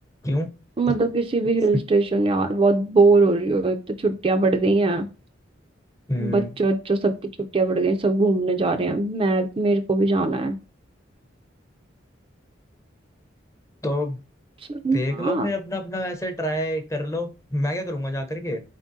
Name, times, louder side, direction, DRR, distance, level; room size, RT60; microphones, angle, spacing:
voice 1, 0.8-5.1 6.2-10.6 14.7-15.5, right 3 dB, 30° right, 6 dB, 0.4 m, -21 dB
voice 2, 6.1-6.5 13.8-14.2 14.9-18.6, left 1 dB, 15° left, 6 dB, 0.6 m, -27 dB
4.3 x 3.6 x 2.6 m, 0.32 s
head